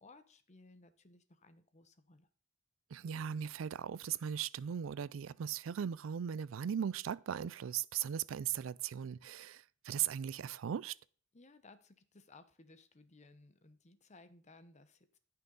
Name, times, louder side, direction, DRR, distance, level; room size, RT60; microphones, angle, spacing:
voice 1, 0.0-2.3 11.3-15.2, left 3 dB, 35° left, 0.9 m, -60 dB
voice 2, 2.9-10.9, right 9 dB, 85° right, 0.4 m, -38 dB
13.5 x 5.8 x 3.9 m
head